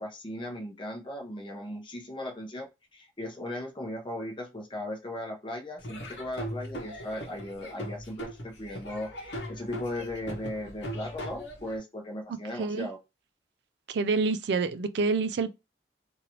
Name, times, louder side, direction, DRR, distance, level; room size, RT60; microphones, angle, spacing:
voice 1, 0.0-13.0, left 1 dB, 25° left, 0.8 m, -37 dB
Laughter / Drum, 5.8-11.8, equal, 75° left, 1.0 m, -39 dB
voice 2, 12.6-12.9 13.9-15.5, right 4 dB, 70° right, 0.4 m, -27 dB
3.0 x 2.6 x 2.9 m
head